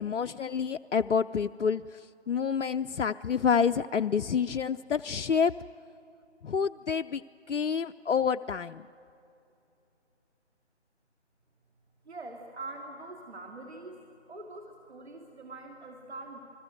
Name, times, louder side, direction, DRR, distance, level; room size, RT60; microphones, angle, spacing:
voice 1, 0.0-2.0 2.3-5.5 6.4-7.2 7.5-8.9, left 6 dB, 80° left, 9 dB, 0.6 m, -28 dB
voice 2, 12.1-14.0 14.3-16.4, right 2 dB, 65° right, 1 dB, 2.6 m, -43 dB
29.5 x 20.5 x 7.9 m, 2.7 s
figure-of-eight pair, 160°, 35 cm